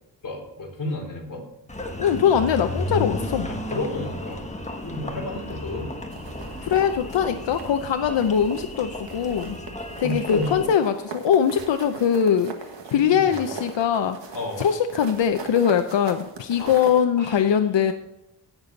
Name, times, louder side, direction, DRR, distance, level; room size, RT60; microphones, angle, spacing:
voice 1, 0.2-1.4 3.5-4.4 4.8-5.9 10.0-10.7 12.9-13.4 14.3-14.6 16.6-16.7 17.2-17.5, left 2 dB, 50° left, -1 dB, 3.6 m, -31 dB
Engine, 1.7-10.7, left 1 dB, 15° left, 1.3 m, -33 dB
voice 2, 2.0-3.5 6.6-9.6 10.0-12.5 12.9-14.2 14.6-17.9, left 8 dB, 90° left, 7 dB, 0.7 m, -22 dB
sound 1, 6.1-7.8 8.2-8.8 9.1-17.0, right 4 dB, 85° right, 1.6 m, -39 dB
16.0 x 6.9 x 4.0 m, 0.89 s
wide cardioid pair, 140°, 43 cm